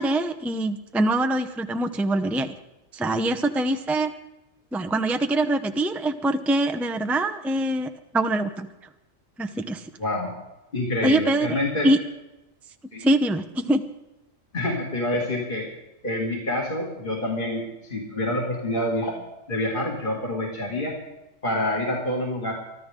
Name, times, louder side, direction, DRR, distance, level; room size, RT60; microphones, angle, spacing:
voice 1, 0.0-2.5 2.9-4.1 4.7-8.7 9.4-9.8 11.0-11.5 11.8-12.0 13.0-13.8, right 1 dB, ahead, 6 dB, 0.6 m, -24 dB
voice 2, 10.0-10.3 10.7-11.9 12.9-13.0 14.5-15.7 16.0-19.2 19.5-21.0 21.4-22.5, left 1 dB, 40° left, -2 dB, 2.8 m, -27 dB
24.0 x 13.5 x 3.8 m, 0.97 s
omnidirectional pair, 1.4 m